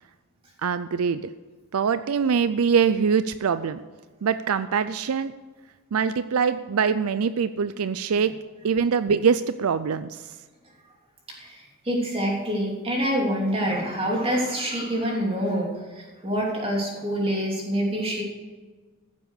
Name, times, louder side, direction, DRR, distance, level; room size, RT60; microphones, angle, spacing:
voice 1, 0.6-1.2 1.7-3.8 4.2-5.3 5.9-8.3 8.6-10.3, right 6 dB, 75° right, 13 dB, 0.4 m, -23 dB
voice 2, 11.4-15.7 15.9-18.2, equal, 25° right, -2 dB, 3.1 m, -26 dB
15.0 x 7.6 x 6.6 m, 1.4 s
head